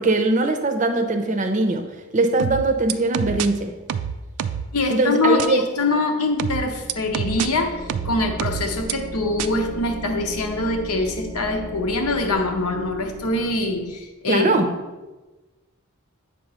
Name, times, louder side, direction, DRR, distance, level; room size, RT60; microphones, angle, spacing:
voice 1, 0.0-1.9 2.1-3.7 4.9-5.6 14.3-14.7, right 2 dB, 35° right, 5 dB, 0.5 m, -21 dB
sound 1, 2.4-3.5 3.9-4.7 5.4-5.5 6.4-7.5 7.9-8.9 9.4-9.5, right 8 dB, 80° right, 0.4 m, -26 dB
voice 2, 4.7-14.7, left 2 dB, 85° left, 4 dB, 0.9 m, -24 dB
sound 2, 6.3-14.0, equal, 10° left, 0.7 m, -37 dB
8.0 x 3.0 x 5.5 m, 1.2 s
head